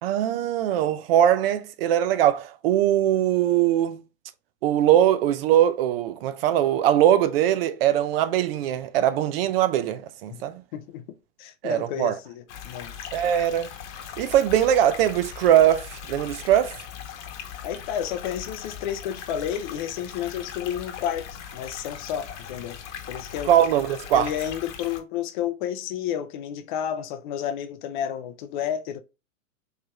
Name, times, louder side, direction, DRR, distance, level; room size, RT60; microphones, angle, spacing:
voice 1, 0.0-4.0 4.6-10.6 11.6-12.2 13.1-13.7 14.2-16.8 23.5-24.3, right 11 dB, 45° right, 0.5 m, -21 dB
voice 2, 10.7-11.1 11.4-12.9 17.6-22.8 23.1-23.5 24.1-29.0, left 9 dB, 40° left, 0.5 m, -31 dB
sound 1, 12.5-25.0, left 8 dB, 60° left, 1.1 m, -39 dB
4.6 x 3.2 x 2.3 m
hypercardioid pair, 115°, 41 cm